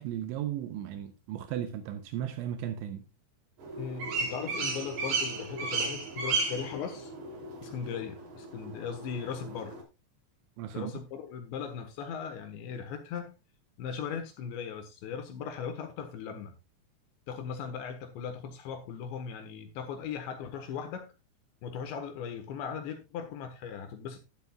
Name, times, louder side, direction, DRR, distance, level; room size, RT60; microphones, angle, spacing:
voice 1, 0.0-3.1 10.6-10.9, right 10 dB, 80° right, 3.2 m, -35 dB
sound 1, 3.6-9.8, right 3 dB, 60° right, 4.7 m, -35 dB
voice 2, 3.8-7.1 7.6-9.8 10.7-13.4 13.8-16.6 17.3-21.1 21.6-24.2, left 7 dB, 75° left, 3.5 m, -38 dB
12.0 x 11.5 x 2.4 m
omnidirectional pair, 5.3 m